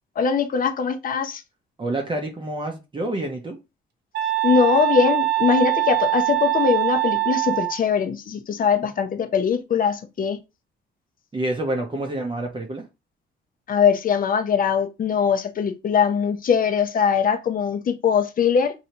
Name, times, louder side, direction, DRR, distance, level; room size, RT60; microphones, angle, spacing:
voice 1, 0.2-1.4 4.4-10.4 13.7-18.7, left 6 dB, 45° left, 0.6 m, -21 dB
voice 2, 1.8-3.6 11.3-12.8, right 1 dB, 25° right, 0.7 m, -28 dB
sound 1, 4.1-7.8, right 17 dB, 60° right, 0.7 m, -22 dB
3.1 x 2.8 x 2.8 m
cardioid pair, 90°, 20 cm